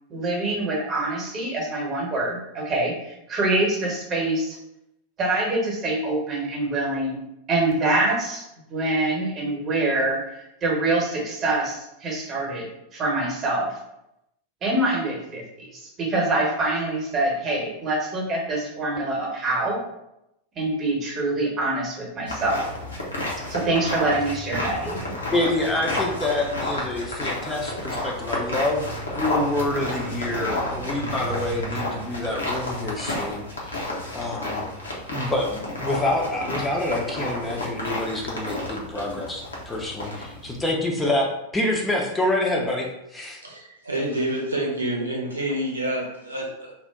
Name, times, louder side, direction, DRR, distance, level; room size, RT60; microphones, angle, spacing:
voice 1, 0.1-4.6 5.2-7.1 7.5-13.7 14.6-19.8 20.6-22.6 23.5-25.1, right 2 dB, 25° right, -1 dB, 0.9 m, -25 dB
sound 1, 22.3-40.7, left 1 dB, 75° left, 0.7 m, -31 dB
voice 2, 25.3-28.9 29.1-33.8 34.1-34.7 35.1-43.4, left 1 dB, 10° left, -1 dB, 0.5 m, -27 dB
voice 3, 43.4-46.7, right 1 dB, 80° right, -2 dB, 0.6 m, -28 dB
2.6 x 2.1 x 3.5 m, 0.85 s
figure-of-eight pair, 90°, 0 cm